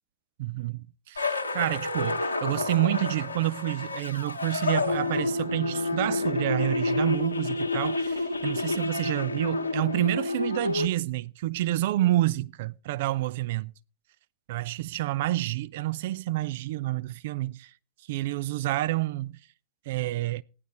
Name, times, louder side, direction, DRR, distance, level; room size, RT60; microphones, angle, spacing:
voice 1, 0.4-13.7 14.5-17.7 18.1-19.3 19.9-20.4, right 16 dB, 55° right, 0.5 m, -28 dB
sound 1, 1.2-10.9, left 3 dB, 80° left, 1.3 m, -29 dB
15.0 x 10.5 x 4.1 m
figure-of-eight pair, 90°, 0 cm